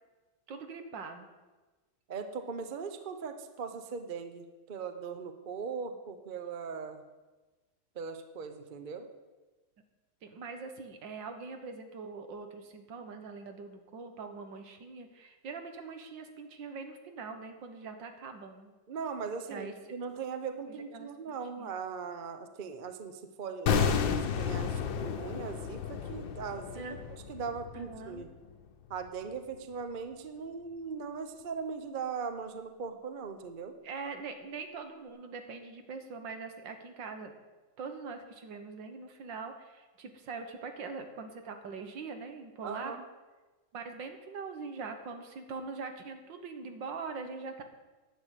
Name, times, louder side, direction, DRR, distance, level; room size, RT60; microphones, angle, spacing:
voice 1, 0.5-1.3 10.2-18.7 19.5-19.7 20.9-21.7 26.8-27.0 27.7-28.3 33.8-37.3 37.8-43.1 43.7-47.6, right 4 dB, 75° right, 6 dB, 2.0 m, -42 dB
voice 2, 2.1-7.0 7.9-9.1 18.9-26.8 27.3-28.3 28.9-33.8 42.6-43.0, right 5 dB, 40° right, 8 dB, 0.7 m, -39 dB
sound 1, 23.7-28.7 28.9-29.1, left 7 dB, 90° left, 1.7 m, -32 dB
10.5 x 8.3 x 8.2 m, 1.2 s
omnidirectional pair, 2.0 m